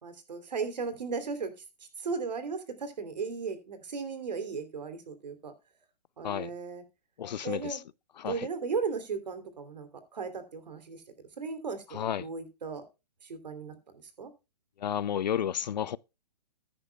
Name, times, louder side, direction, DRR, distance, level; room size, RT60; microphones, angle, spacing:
voice 1, 0.0-1.5 2.0-5.5 6.2-6.8 7.4-7.8 8.2-11.0 11.4-12.8 13.2-14.3, right 5 dB, 80° right, 3.1 m, -36 dB
voice 2, 7.2-7.8 8.2-8.5 11.9-12.3 14.8-16.0, left 9 dB, 85° left, 0.6 m, -32 dB
14.5 x 9.9 x 2.2 m
hypercardioid pair, 175°, 21 cm